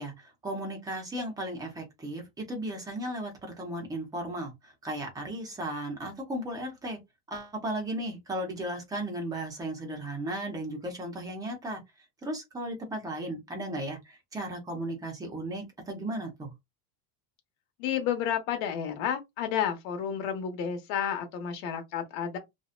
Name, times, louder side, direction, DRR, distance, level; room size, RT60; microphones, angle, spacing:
voice 1, 0.0-7.0 7.3-11.8 12.2-16.5, right 1 dB, 10° right, 0.5 m, -35 dB
voice 2, 17.8-22.4, left 9 dB, 65° left, 1.0 m, -31 dB
2.7 x 2.1 x 2.4 m
cardioid pair, 160°, 45 cm